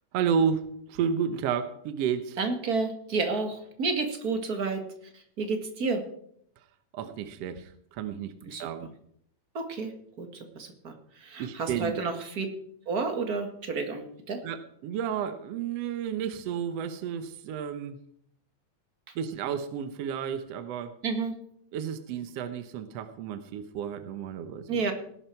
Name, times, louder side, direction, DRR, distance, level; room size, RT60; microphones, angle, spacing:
voice 1, 0.1-2.4 6.9-8.9 11.4-11.9 14.4-18.0 19.1-21.0 21.7-24.9, right 7 dB, 70° right, 10 dB, 1.6 m, -31 dB
voice 2, 2.4-4.8 5.1-6.1 8.4-8.7 9.5-12.4 12.8-14.4 21.0-21.4 24.7-24.9, right 4 dB, 35° right, 6 dB, 1.7 m, -31 dB
18.5 x 11.5 x 4.5 m, 0.68 s
omnidirectional pair, 3.7 m